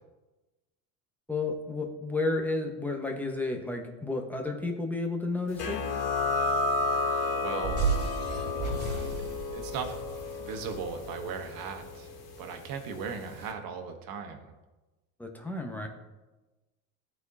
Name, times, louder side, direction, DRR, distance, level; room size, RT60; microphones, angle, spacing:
voice 1, 1.3-5.9 15.2-15.9, left 3 dB, 5° left, 2 dB, 1.3 m, -32 dB
sound 1, 5.6-12.8, left 3 dB, 60° left, 2.3 m, -32 dB
voice 2, 7.4-7.9 9.5-9.9 10.4-12.1 12.4-14.4, right 6 dB, 55° right, 5 dB, 1.4 m, -37 dB
sound 2, 7.6-12.0, right 4 dB, 25° right, 2.5 m, -34 dB
13.5 x 4.5 x 2.8 m, 1.1 s
supercardioid pair, 90°, 41 cm